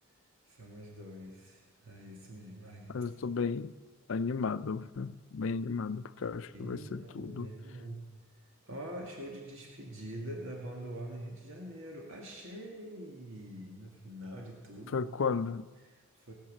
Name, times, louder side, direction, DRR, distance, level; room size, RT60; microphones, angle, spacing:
voice 1, 0.5-2.9 6.5-8.0 8.6-15.1 15.8-16.3, right 1 dB, 65° right, 2.2 m, -44 dB
voice 2, 2.9-3.7 4.1-7.5 14.9-15.7, left 5 dB, 65° left, 0.5 m, -34 dB
19.5 x 7.5 x 7.6 m
head